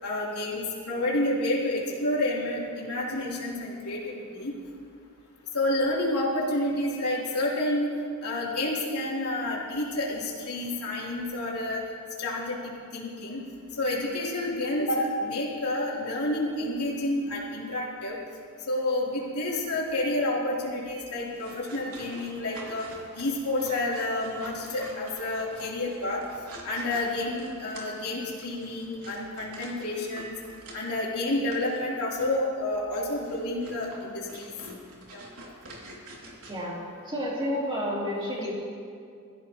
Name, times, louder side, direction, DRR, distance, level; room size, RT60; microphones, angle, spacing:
voice 1, 0.0-4.5 5.5-7.9 8.2-11.8 12.2-13.4 13.8-18.2 18.7-22.9 23.1-26.2 26.6-30.3 30.7-34.7 35.1-35.2, left 1 dB, 85° left, -6 dB, 3.7 m, -29 dB
sound 1, 21.3-31.0 31.5-31.8 32.1-32.3 32.9-36.6, right 2 dB, 85° right, 2.9 m, -47 dB
voice 2, 37.1-38.5, equal, 20° right, -6 dB, 3.9 m, -30 dB
22.0 x 15.0 x 3.2 m, 2.3 s
head